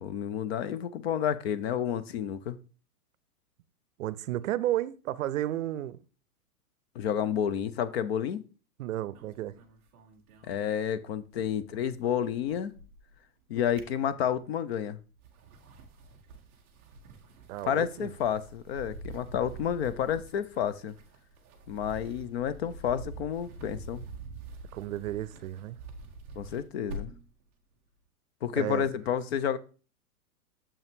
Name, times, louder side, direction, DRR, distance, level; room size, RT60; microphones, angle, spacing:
voice 1, 0.0-2.6 6.9-8.4 10.5-12.7 13.5-15.0 17.6-20.9 21.7-24.0 26.4-27.1 28.4-29.6, left 9 dB, 45° left, 0.6 m, -30 dB
voice 2, 4.0-6.0 8.8-9.6 17.5-18.1 24.7-25.8 28.5-28.9, right 13 dB, 60° right, 0.6 m, -32 dB
sound 1, 9.1-11.3 11.6-13.2 13.5-14.6 15.1-27.3, right 2 dB, 10° right, 0.3 m, -46 dB
6.9 x 5.4 x 3.5 m
hypercardioid pair, 140°, 44 cm